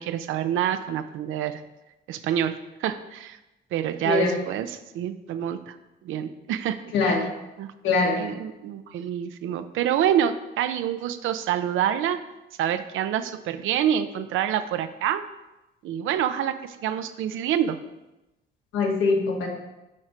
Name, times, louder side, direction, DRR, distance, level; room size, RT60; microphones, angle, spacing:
voice 1, 0.0-1.6 2.1-3.4 3.7-5.8 6.0-7.2 7.6-7.7 8.2-12.2 12.6-15.2 15.8-17.8, right 10 dB, 85° right, 11 dB, 0.6 m, -27 dB
voice 2, 4.0-4.3 6.9-7.3 7.8-8.2 18.7-19.5, left 4 dB, 85° left, -1 dB, 1.8 m, -22 dB
8.6 x 4.6 x 5.0 m, 0.98 s
cardioid pair, 90°, 20 cm